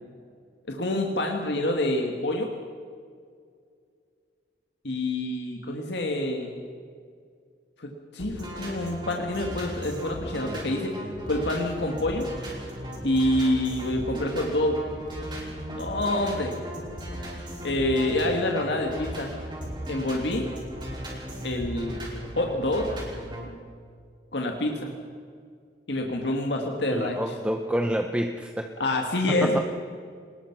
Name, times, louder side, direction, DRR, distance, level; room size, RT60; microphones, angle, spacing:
voice 1, 0.7-2.5 4.8-6.5 7.8-10.9 11.3-12.3 13.0-14.9 15.7-16.6 17.6-19.4 19.9-20.5 21.4-22.0 22.4-22.9 24.3-24.9 25.9-27.2 28.8-29.6, left 1 dB, 80° left, 2 dB, 2.0 m, -27 dB
sound 1, 8.2-23.4, equal, 25° right, 5.2 m, -36 dB
voice 2, 26.9-29.6, equal, 5° right, 4 dB, 0.9 m, -29 dB
24.0 x 20.5 x 6.1 m, 2.2 s
head